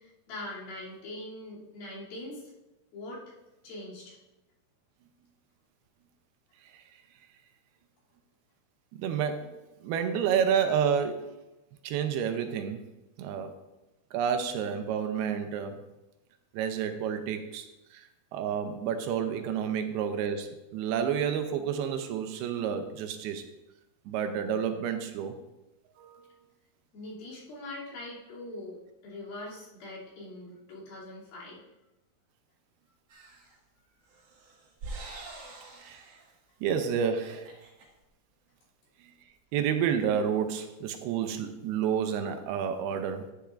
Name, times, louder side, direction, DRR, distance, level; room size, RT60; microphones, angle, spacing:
voice 1, 0.0-2.5 2.9-3.4 3.6-4.2 26.9-31.6, left 1 dB, 65° left, -7 dB, 4.5 m, -42 dB
voice 2, 8.9-9.5 9.8-11.3 11.8-12.8 13.2-13.5 14.1-15.8 16.5-23.4 24.1-25.4 26.0-26.4 35.8-36.1 36.6-37.5 39.0-39.1 39.5-43.3, right 8 dB, 80° right, 7 dB, 2.6 m, -30 dB
sound 1, 33.1-33.5 34.1-36.3 36.7-36.8 37.1-37.8, right 2 dB, 55° right, 2.0 m, -45 dB
11.5 x 10.0 x 2.5 m, 0.98 s
omnidirectional pair, 4.6 m